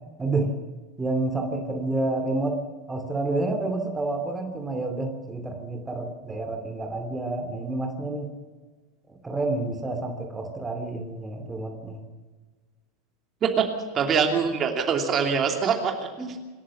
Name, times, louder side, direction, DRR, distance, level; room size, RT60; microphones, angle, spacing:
voice 1, 0.2-0.5 1.0-2.6 2.9-8.3 9.1-12.0 16.2-16.4, right 2 dB, 15° right, 5 dB, 2.8 m, -29 dB
voice 2, 13.9-16.1, right 6 dB, 30° right, 3 dB, 2.9 m, -23 dB
27.0 x 13.5 x 7.2 m, 1.3 s
figure-of-eight pair, 80°, 0 cm